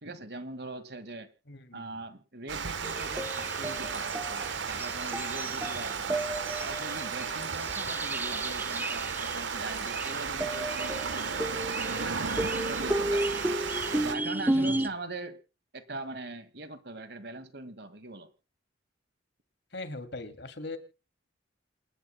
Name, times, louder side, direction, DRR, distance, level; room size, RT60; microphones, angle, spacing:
voice 1, 0.0-1.3 1.7-6.2 6.6-11.6 12.0-13.4 13.9-15.4 15.7-18.3, right 2 dB, 60° right, 12 dB, 1.9 m, -41 dB
voice 2, 1.5-2.0 14.5-14.9 19.7-20.8, left 2 dB, 65° left, 9 dB, 2.6 m, -40 dB
Water, 2.5-14.2, right 5 dB, 75° right, 1.2 m, -34 dB
sound 1, 2.8-14.9, right 1 dB, 10° right, 0.7 m, -33 dB
28.0 x 11.5 x 2.2 m, 0.32 s
head